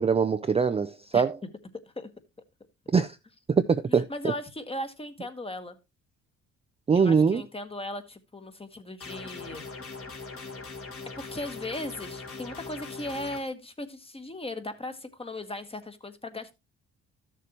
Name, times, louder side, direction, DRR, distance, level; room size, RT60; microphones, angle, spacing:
voice 1, 0.0-1.3 2.9-3.2 3.5-4.0 6.9-7.4, right 5 dB, 20° right, 0.4 m, -22 dB
voice 2, 3.9-5.8 6.9-9.7 11.2-16.5, left 1 dB, 20° left, 1.3 m, -37 dB
sound 1, 9.0-13.4, left 4 dB, 50° left, 2.0 m, -41 dB
13.0 x 6.8 x 2.9 m
cardioid pair, 90°, 30 cm